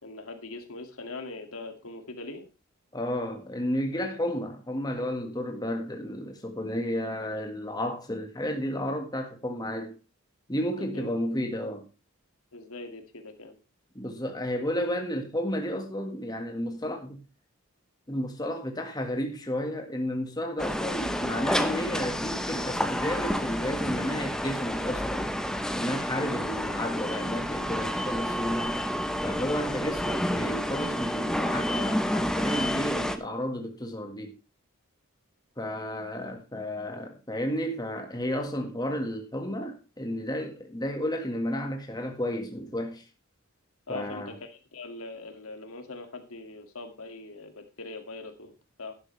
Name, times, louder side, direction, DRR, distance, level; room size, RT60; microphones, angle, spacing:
voice 1, 0.0-2.5 10.8-11.1 12.5-13.6 43.9-48.5 48.8-48.9, left 3 dB, 85° left, 2.3 m, -41 dB
voice 2, 2.9-9.9 10.5-11.9 13.9-17.2 18.1-25.3 25.7-28.8 29.2-34.3 35.6-43.0 43.9-44.3, equal, 20° left, 1.8 m, -32 dB
sound 1, 20.6-33.2, equal, 5° left, 0.9 m, -29 dB
12.0 x 11.0 x 3.3 m
head